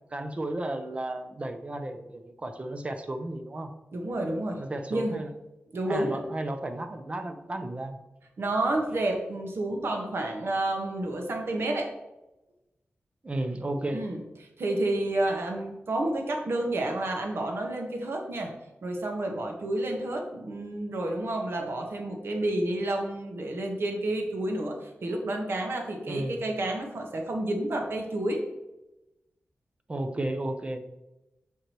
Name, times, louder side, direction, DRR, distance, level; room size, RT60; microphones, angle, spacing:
voice 1, 0.1-3.7 4.6-5.3 5.9-8.0 13.2-14.0 26.1-26.4 29.9-31.0, right 1 dB, 30° right, 7 dB, 0.6 m, -33 dB
voice 2, 3.9-4.6 4.9-5.2 5.7-6.2 8.4-11.9 13.9-14.2 14.6-18.5 18.8-28.4, right 1 dB, 65° right, 2 dB, 1.2 m, -30 dB
6.6 x 4.8 x 3.0 m, 0.96 s
wide cardioid pair, 120°, 4 cm